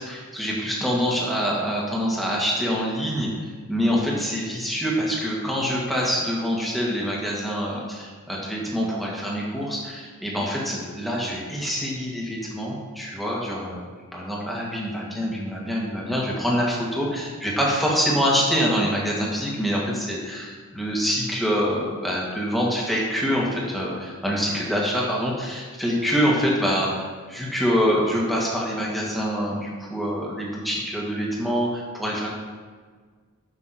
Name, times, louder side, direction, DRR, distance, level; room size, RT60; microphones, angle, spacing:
voice 1, 0.0-3.3 3.7-13.8 14.1-27.0 27.3-32.3, equal, ahead, -4 dB, 2.2 m, -25 dB
12.0 x 6.3 x 4.5 m, 1.5 s
head